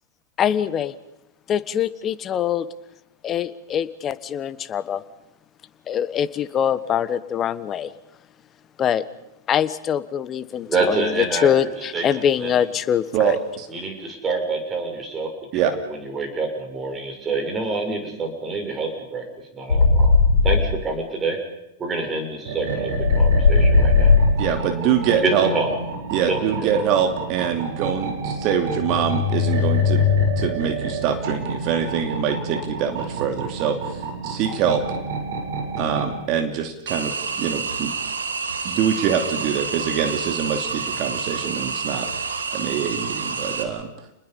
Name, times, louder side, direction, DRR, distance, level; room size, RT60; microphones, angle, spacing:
voice 1, 0.4-0.9 1.5-2.7 3.2-5.0 5.9-7.9 8.8-9.0 9.5-13.4, left 9 dB, 30° left, 14 dB, 1.3 m, -23 dB
voice 2, 10.7-11.5 11.9-12.5 13.7-15.7 16.0-19.2 19.5-20.1 20.4-21.4 21.8-24.1 25.1-25.7 26.3-26.7, right 3 dB, 20° right, 4 dB, 6.8 m, -27 dB
voice 3, 13.1-13.7 15.5-15.8 24.4-25.5 26.1-30.0 30.4-34.8 35.8-37.9 38.6-42.1 42.5-43.9, right 8 dB, 40° right, 6 dB, 2.7 m, -24 dB
sound 1, 19.7-20.7 22.9-24.5 28.7-30.3, left 4 dB, 85° left, 3.6 m, -17 dB
sound 2, 22.4-36.2, right 4 dB, 60° right, 7.4 m, -30 dB
sound 3, 36.9-43.6, right 5 dB, 80° right, 2.9 m, -28 dB
30.0 x 20.5 x 5.5 m, 0.88 s
hypercardioid pair, 100°, 0 cm